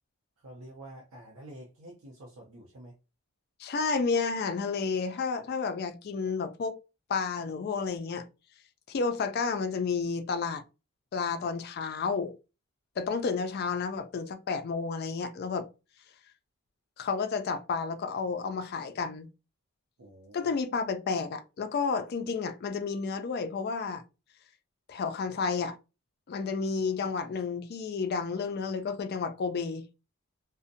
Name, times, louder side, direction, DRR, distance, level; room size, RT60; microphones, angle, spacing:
voice 1, 0.4-2.9 20.0-20.5, right 1 dB, 80° right, 0.6 m, -48 dB
voice 2, 3.6-6.8 7.1-8.3 8.9-10.6 11.1-12.4 13.0-15.7 17.0-19.3 20.3-24.0 24.9-25.8 26.3-29.8, left 5 dB, 45° left, 0.3 m, -31 dB
2.5 x 2.1 x 2.5 m
head